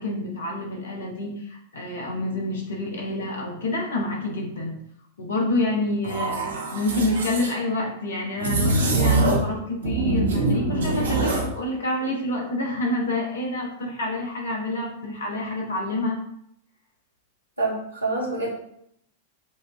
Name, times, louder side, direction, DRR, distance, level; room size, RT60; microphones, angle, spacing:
voice 1, 0.0-4.8 5.2-16.2, left 1 dB, 70° left, 0 dB, 1.1 m, -28 dB
sound 1, 6.0-7.5 8.4-9.5 9.8-11.5, right 2 dB, 70° right, 0.8 m, -23 dB
voice 2, 17.6-18.5, right 2 dB, 85° right, -4 dB, 1.3 m, -26 dB
6.7 x 2.6 x 2.3 m, 0.73 s
figure-of-eight pair, 95°, 0 cm